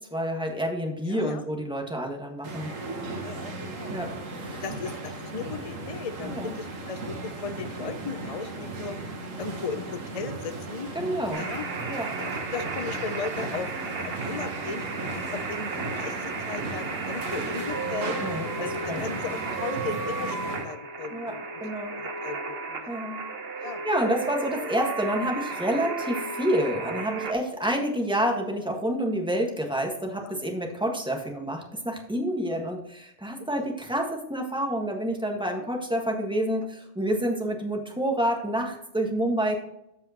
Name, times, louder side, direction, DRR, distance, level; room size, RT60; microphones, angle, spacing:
voice 1, 0.1-2.7 3.9-4.6 6.3-6.6 10.9-11.4 11.9-12.1 18.2-18.5 18.9-19.0 21.1-22.0 22.9-23.2 23.8-39.6, equal, 5° right, 1 dB, 1.4 m, -28 dB
voice 2, 1.0-1.5 3.0-3.9 4.6-8.9 9.4-10.9 11.3-11.7 12.1-14.9 15.1-18.2 18.6-20.4 20.6-21.6 21.9-23.0 23.6-23.8 30.2-30.4 31.2-31.5 33.6-33.7 35.5-35.6, left 5 dB, 40° left, 9 dB, 0.5 m, -37 dB
sound 1, 2.4-20.7, right 2 dB, 85° right, 1.7 m, -36 dB
sound 2, 11.3-27.3, right 4 dB, 55° right, 1.1 m, -34 dB
14.0 x 4.9 x 2.9 m, 0.79 s
omnidirectional pair, 1.3 m